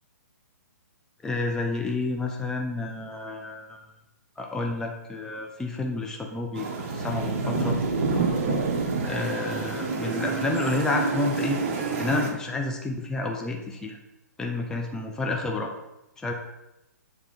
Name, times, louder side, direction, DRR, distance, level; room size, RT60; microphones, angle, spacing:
voice 1, 1.2-3.8 4.4-6.7 6.9-7.8 9.0-11.6 12.0-14.0 14.4-15.7 16.2-16.3, left 3 dB, 5° left, 1 dB, 0.5 m, -30 dB
sound 1, 6.5-12.3, right 4 dB, 45° right, 0.9 m, -29 dB
sound 2, 6.8-9.3, right 2 dB, 75° right, 1.1 m, -30 dB
6.7 x 3.3 x 4.6 m, 0.94 s
figure-of-eight pair, 125°, 10 cm